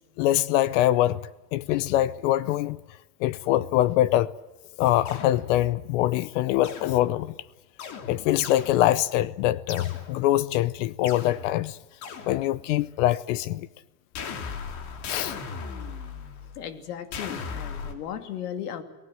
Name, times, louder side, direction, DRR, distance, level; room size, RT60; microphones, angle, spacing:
voice 1, 0.2-1.2 1.5-2.8 3.2-4.3 4.8-7.3 8.1-11.8 12.3-13.7 15.1-15.4, left 14 dB, 55° left, 0.8 m, -24 dB
sound 1, 5.1-5.8 6.6-7.4 7.8-9.2 9.7-10.4 11.0-12.9 14.1-16.6 17.1-17.9, left 6 dB, 40° left, 3.2 m, -38 dB
voice 2, 16.5-18.8, left 9 dB, 85° left, 3.0 m, -36 dB
30.0 x 20.0 x 7.8 m
supercardioid pair, 160°, 45 cm